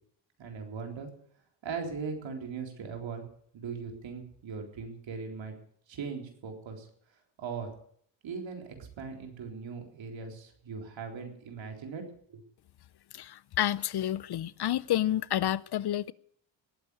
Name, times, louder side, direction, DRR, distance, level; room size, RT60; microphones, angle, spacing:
voice 1, 0.4-1.1 1.6-3.2 3.5-5.5 5.9-6.9 7.4-7.7 8.2-12.0 12.3-12.4, right 5 dB, 70° right, 3.9 m, -39 dB
voice 2, 13.1-16.1, left 12 dB, 55° left, 0.6 m, -29 dB
19.0 x 8.6 x 8.3 m
cardioid pair, 80°, 47 cm